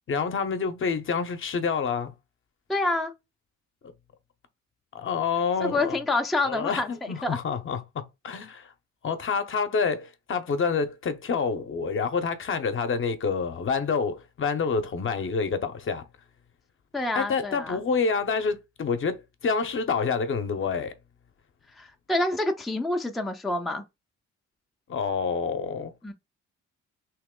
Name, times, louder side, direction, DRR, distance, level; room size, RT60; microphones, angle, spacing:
voice 1, 0.1-2.1 4.9-6.0 6.4-8.7 9.0-16.0 17.1-20.9 24.9-25.9, left 5 dB, 45° left, 0.7 m, -28 dB
voice 2, 2.7-3.1 5.6-6.9 7.2-7.4 16.9-17.8 21.7-23.8 26.0-26.1, left 2 dB, ahead, 0.4 m, -27 dB
3.0 x 2.9 x 3.6 m
cardioid pair, 90°, 30 cm